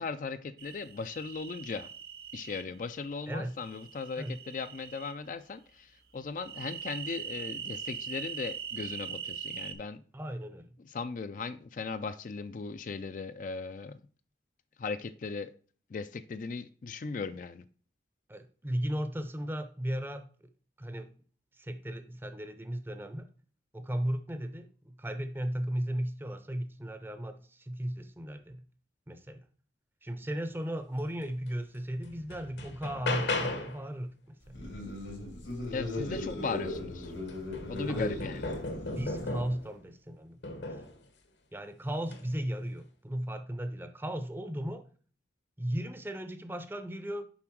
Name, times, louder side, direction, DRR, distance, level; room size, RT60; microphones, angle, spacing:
voice 1, 0.0-1.9 2.3-10.0 10.8-14.0 14.8-15.5 15.9-17.6 35.7-37.1 37.7-38.5, left 4 dB, 45° left, 0.3 m, -38 dB
sound 1, 0.6-2.6 3.6-5.1 6.4-9.7, right 8 dB, 55° right, 0.8 m, -41 dB
voice 2, 10.1-10.7 18.3-20.3 20.8-21.1 21.6-23.3 23.7-28.6 29.1-29.4 30.0-34.6 37.9-38.0 38.8-40.6 41.5-44.8 45.6-47.2, equal, 10° right, 0.6 m, -36 dB
sound 2, 31.5-31.6 32.0-33.9 36.2-36.3 36.7-39.7 40.4-41.0 42.0-42.3, left 2 dB, 70° left, 1.2 m, -36 dB
sound 3, 34.5-39.6, left 2 dB, 85° left, 2.7 m, -38 dB
7.1 x 5.0 x 4.6 m
head